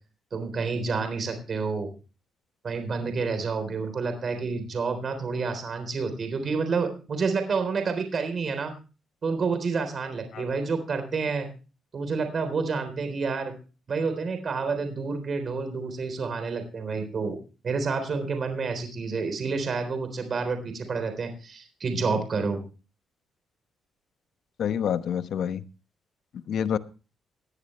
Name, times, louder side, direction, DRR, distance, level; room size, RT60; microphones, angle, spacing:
voice 1, 0.3-1.9 2.6-8.7 9.2-11.5 11.9-13.5 13.9-17.4 17.6-22.6, right 4 dB, 45° right, 7 dB, 3.7 m, -29 dB
voice 2, 24.6-25.6 26.5-26.8, left 8 dB, 65° left, 11 dB, 1.0 m, -27 dB
18.5 x 10.5 x 3.2 m, 0.34 s
cardioid pair, 90°, 0 cm